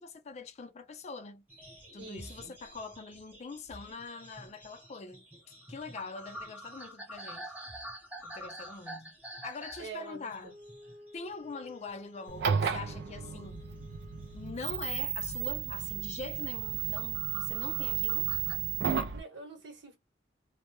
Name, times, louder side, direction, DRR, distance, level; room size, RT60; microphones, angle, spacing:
voice 1, 0.0-1.4 1.9-5.2 5.7-7.6 8.2-9.2 9.4-10.6 11.1-13.6 14.3-18.3, left 4 dB, 40° left, 0.4 m, -43 dB
sound 1, 1.5-12.0 12.2-12.9 13.2-14.7 15.1-15.3 15.7-15.9 16.4-18.6, right 1 dB, 10° right, 0.9 m, -48 dB
voice 2, 2.0-2.5 9.8-10.3 19.1-20.0, right 4 dB, 85° right, 1.0 m, -45 dB
Wind instrument woodwind instrument, 10.4-14.9, left 2 dB, 40° right, 0.9 m, -54 dB
sound 2, 12.3-19.2, right 8 dB, 65° right, 0.3 m, -33 dB
2.2 x 2.0 x 2.9 m
head